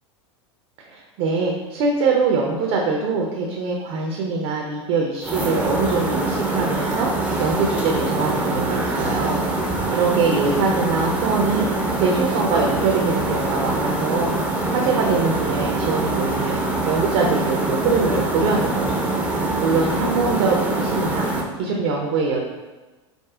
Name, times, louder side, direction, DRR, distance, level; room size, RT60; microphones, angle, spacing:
voice 1, 0.8-9.6 9.9-14.3 14.7-16.6 16.8-19.0 19.6-21.3 21.6-22.4, right 4 dB, 55° right, 0 dB, 0.5 m, -23 dB
sound 1, 5.2-21.4, right 2 dB, 10° right, 0.5 m, -24 dB
4.9 x 2.1 x 2.3 m, 1.2 s
hypercardioid pair, 95°, 15 cm